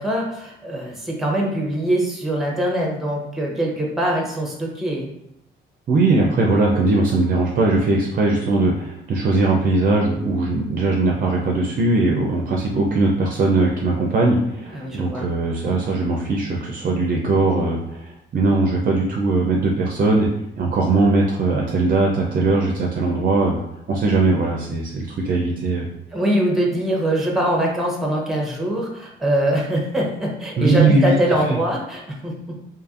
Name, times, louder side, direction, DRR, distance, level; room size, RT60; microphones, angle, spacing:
voice 1, 0.0-5.1 14.7-15.3 15.6-15.8 26.1-32.6, right 1 dB, ahead, -1 dB, 0.7 m, -23 dB
voice 2, 5.9-20.3 20.6-23.6 23.9-25.9 30.6-31.1 31.5-31.6, right 3 dB, 45° right, 0 dB, 0.4 m, -20 dB
2.6 x 2.5 x 2.4 m, 0.81 s
cardioid pair, 90°, 20 cm